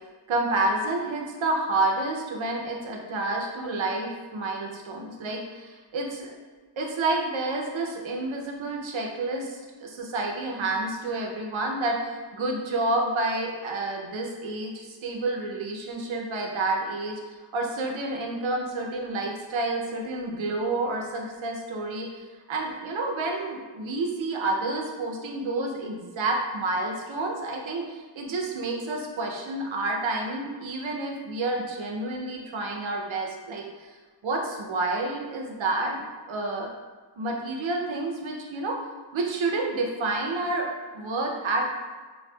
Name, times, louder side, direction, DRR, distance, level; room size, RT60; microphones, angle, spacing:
voice 1, 0.3-6.3 6.8-33.9 34.2-36.7 37.2-38.8 39.1-41.6, right 2 dB, 80° right, 1 dB, 0.6 m, -29 dB
4.2 x 2.3 x 2.2 m, 1.4 s
wide cardioid pair, 100°, 46 cm